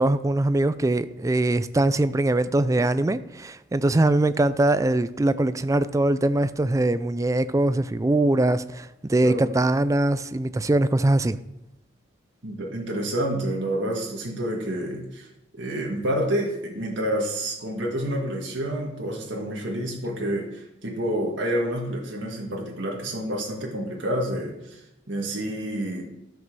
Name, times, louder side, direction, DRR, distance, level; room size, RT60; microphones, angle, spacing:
voice 1, 0.0-11.4, right 2 dB, 15° right, 0.3 m, -22 dB
voice 2, 12.4-15.3 15.6-26.0, right 1 dB, 65° right, 1.8 m, -28 dB
13.0 x 5.2 x 6.1 m
head